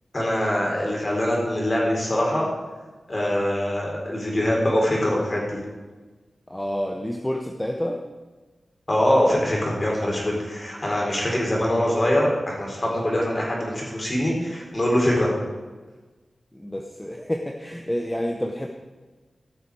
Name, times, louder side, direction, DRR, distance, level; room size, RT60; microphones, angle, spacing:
voice 1, 0.1-2.5 3.1-5.6 8.9-15.3, left 1 dB, 35° left, -2 dB, 3.7 m, -23 dB
voice 2, 6.5-8.1 16.5-18.7, equal, 10° left, 2 dB, 0.8 m, -29 dB
15.5 x 6.7 x 4.8 m, 1.3 s
wide cardioid pair, 80°, 0 cm